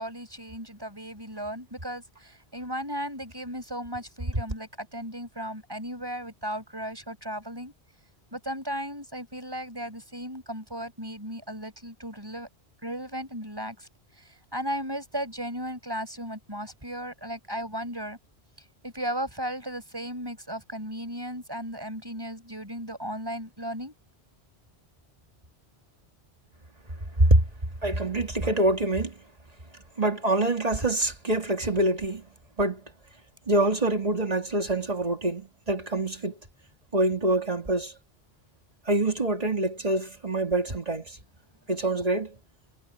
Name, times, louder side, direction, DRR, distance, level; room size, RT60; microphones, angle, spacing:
voice 1, 0.0-7.7 8.3-12.5 12.8-13.9 14.2-14.3 14.5-18.2 18.8-23.9, equal, 20° right, 7.3 m, -35 dB
voice 2, 27.8-29.1 30.0-32.2 32.6-32.8 33.5-36.4 36.9-37.9 38.9-41.0 41.7-42.3, right 2 dB, 35° right, 2.3 m, -25 dB
omnidirectional pair, 1.1 m